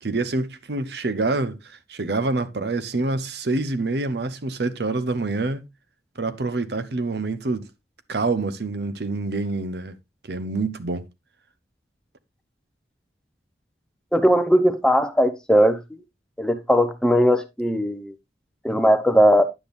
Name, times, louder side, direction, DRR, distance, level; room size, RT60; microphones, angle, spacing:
voice 1, 0.0-5.6 6.2-7.7 8.1-9.9 10.3-11.1, right 3 dB, 70° right, 0.7 m, -26 dB
voice 2, 14.1-15.8 16.4-18.1 18.6-19.4, equal, 5° left, 0.6 m, -18 dB
9.8 x 7.0 x 2.5 m
head